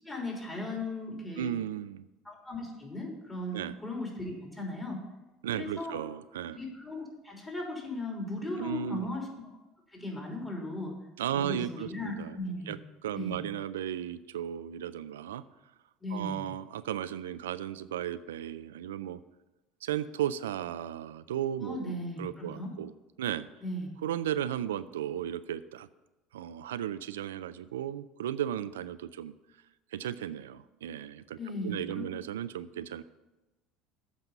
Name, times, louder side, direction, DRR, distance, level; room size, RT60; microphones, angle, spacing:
voice 1, 0.0-1.5 2.2-5.0 5.5-6.0 6.5-9.3 9.9-10.9 11.3-12.8 13.1-13.4 16.0-16.5 21.6-22.7 23.6-23.9 31.4-32.1, left 1 dB, 15° left, -1 dB, 3.2 m, -37 dB
voice 2, 1.4-2.1 3.5-3.8 5.4-6.6 8.6-9.2 11.2-12.4 12.7-12.8 13.0-15.4 16.1-19.2 19.8-22.9 23.2-23.5 24.0-25.9 26.3-29.3 29.9-31.4 31.6-33.0, right 10 dB, 90° right, 14 dB, 0.3 m, -35 dB
8.1 x 5.3 x 7.2 m, 1.1 s
hypercardioid pair, 85°, 0 cm